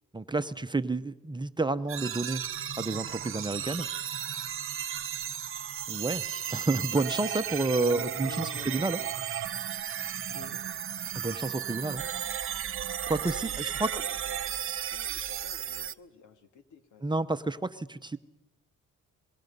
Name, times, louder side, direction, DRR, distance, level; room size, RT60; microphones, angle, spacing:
voice 1, 0.1-2.4 2.8-3.9 5.9-9.0 11.1-12.0 13.1-13.9 17.0-18.2, right 3 dB, 15° right, 10 dB, 0.8 m, -30 dB
sound 1, 1.9-15.9, right 9 dB, 45° right, 0.7 m, -34 dB
voice 2, 7.7-9.1 10.3-10.6 13.6-14.4 14.7-17.1, left 4 dB, 75° left, 7 dB, 2.3 m, -47 dB
25.5 x 21.5 x 5.5 m, 0.95 s
cardioid pair, 90°, 30 cm